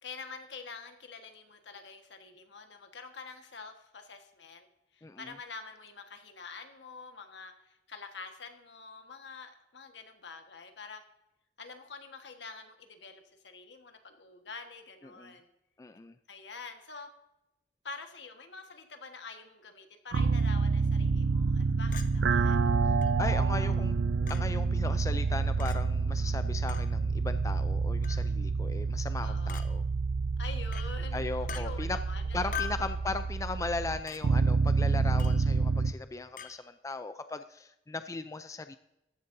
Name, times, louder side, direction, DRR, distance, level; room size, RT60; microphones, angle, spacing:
voice 1, 0.0-4.7 4.9-11.0 11.6-15.5 16.3-17.1 17.8-22.7 26.2-26.3 29.2-29.6 30.4-32.7, left 4 dB, 75° left, 6 dB, 1.4 m, -46 dB
voice 2, 5.0-5.3 15.1-15.4 15.8-16.2 22.8-22.9 23.2-24.0 24.3-29.8 31.1-32.0 32.3-38.8, left 3 dB, 20° left, 10 dB, 0.4 m, -37 dB
sound 1, 20.1-35.9, right 4 dB, 75° right, 0.4 m, -28 dB
Chink clink, 21.9-22.1 23.0-23.1 24.3-24.4 25.6-25.8 26.7-26.9 28.0-28.3 29.5-29.7 30.7-30.9 31.5-31.6 32.5-32.9 34.1-34.2 35.2-35.4 36.4-36.5, left 8 dB, 50° left, 0.8 m, -40 dB
14.5 x 11.0 x 2.7 m, 0.91 s
head